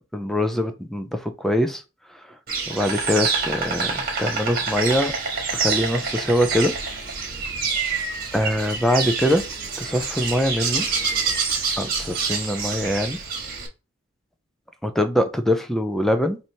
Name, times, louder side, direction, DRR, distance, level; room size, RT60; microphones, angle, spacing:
voice 1, 0.1-1.8 2.7-5.1 5.5-6.7 8.3-9.4 9.8-10.9 11.8-13.2 14.8-16.4, equal, ahead, 0.5 m, -23 dB
Insect, 2.5-13.7, right 5 dB, 50° right, 1.3 m, -27 dB
4.8 x 2.8 x 2.7 m
head